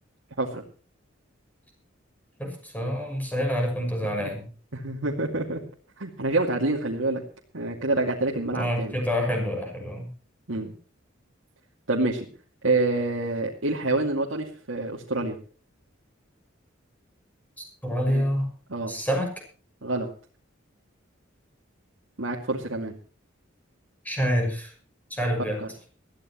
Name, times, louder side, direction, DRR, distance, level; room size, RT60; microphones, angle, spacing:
voice 1, 2.4-4.5 8.5-10.1 17.6-18.5 18.9-19.3 24.0-24.7 25.1-25.6, equal, 10° left, 2 dB, 6.4 m, -27 dB
voice 2, 4.7-5.6 6.0-7.2 7.5-8.9 10.5-10.7 11.9-12.3 12.6-15.4 18.1-18.3 18.7-18.9 19.8-20.1 22.2-22.9 25.6-25.7, right 2 dB, 85° right, -2 dB, 2.4 m, -27 dB
21.5 x 14.5 x 3.1 m, 0.40 s
head